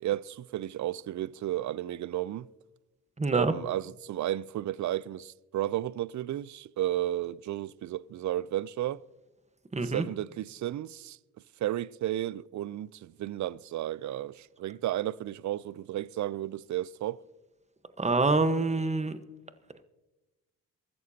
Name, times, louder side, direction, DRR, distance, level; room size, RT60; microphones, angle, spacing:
voice 1, 0.0-2.5 3.3-9.0 9.8-11.2 11.6-17.2, right 13 dB, 55° right, 0.5 m, -33 dB
voice 2, 3.2-3.5 9.7-10.0 18.0-19.2, right 3 dB, 20° right, 1.2 m, -26 dB
23.0 x 13.5 x 2.8 m
supercardioid pair, 50°, 36 cm